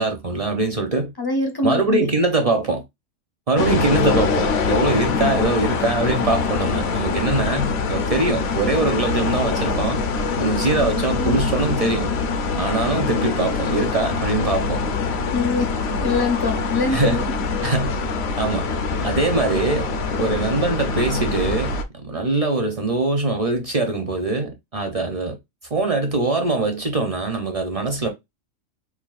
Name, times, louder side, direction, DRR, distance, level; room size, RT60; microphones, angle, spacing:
voice 1, 0.0-1.1 1.6-2.8 3.5-10.0 10.4-12.1 12.6-14.8 16.9-17.2 17.6-17.9 18.4-18.7 19.0-19.9 20.2-25.4 25.7-28.1, right 3 dB, 40° right, 0.5 m, -22 dB
voice 2, 1.2-2.0 10.8-11.4 15.3-17.3, left 3 dB, 30° left, 0.4 m, -24 dB
sound 1, 3.6-21.8, left 4 dB, 60° left, 0.7 m, -24 dB
5.8 x 2.3 x 2.4 m
omnidirectional pair, 1.4 m